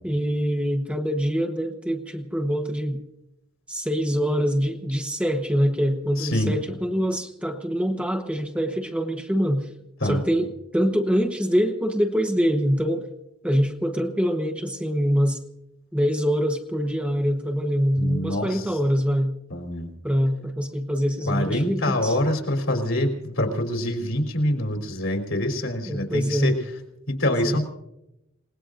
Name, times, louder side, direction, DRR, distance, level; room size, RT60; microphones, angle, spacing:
voice 1, 0.0-3.0 3.7-9.7 10.0-13.1 13.4-15.4 15.9-19.3 20.0-22.2 25.9-26.5 27.3-27.6, equal, 5° right, 4 dB, 1.1 m, -24 dB
voice 2, 6.2-6.5 10.0-10.2 18.0-18.6 19.5-19.9 21.2-26.5 27.1-27.6, left 1 dB, 65° left, 4 dB, 3.5 m, -25 dB
28.0 x 19.0 x 2.6 m, 0.86 s
head